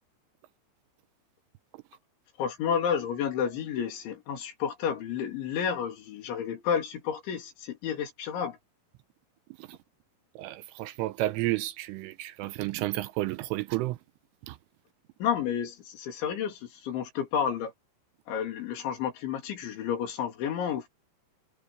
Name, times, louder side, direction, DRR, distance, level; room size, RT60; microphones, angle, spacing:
voice 1, 2.4-8.6 15.2-17.7 18.3-20.9, left 8 dB, 65° left, 5.2 m, -31 dB
voice 2, 10.4-14.0 14.5-14.6, right 18 dB, 85° right, 3.1 m, -31 dB
omnidirectional pair, 6.0 m